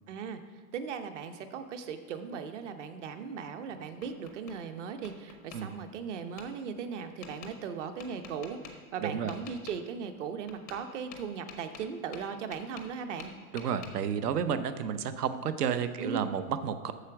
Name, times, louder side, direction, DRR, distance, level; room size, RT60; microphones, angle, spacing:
voice 1, 0.1-0.4 0.7-13.3 16.0-16.3, right 6 dB, 50° right, 8 dB, 0.9 m, -38 dB
Tap, 3.5-4.6 5.0-5.6 6.4-6.5 7.2-7.5 8.0-8.7 9.3-9.8 10.5-10.8 11.1-12.9 13.2-13.9, left 6 dB, 15° left, 0.4 m, -47 dB
voice 2, 9.0-9.3 13.5-16.9, right 7 dB, 90° right, 11 dB, 0.9 m, -31 dB
8.3 x 6.9 x 5.9 m, 1.5 s
supercardioid pair, 165°, 45 cm